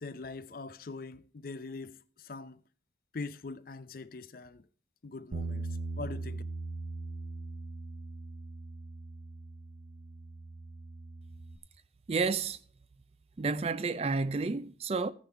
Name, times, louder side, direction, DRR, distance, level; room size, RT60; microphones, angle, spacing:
voice 1, 0.0-2.6 3.1-4.6 5.0-5.7 6.0-6.4, left 3 dB, 50° left, 0.5 m, -42 dB
Bass guitar, 5.3-11.6, right 3 dB, 75° right, 1.1 m, -40 dB
voice 2, 12.1-12.6 13.4-15.1, right 4 dB, 35° right, 0.4 m, -30 dB
15.5 x 5.4 x 4.5 m
head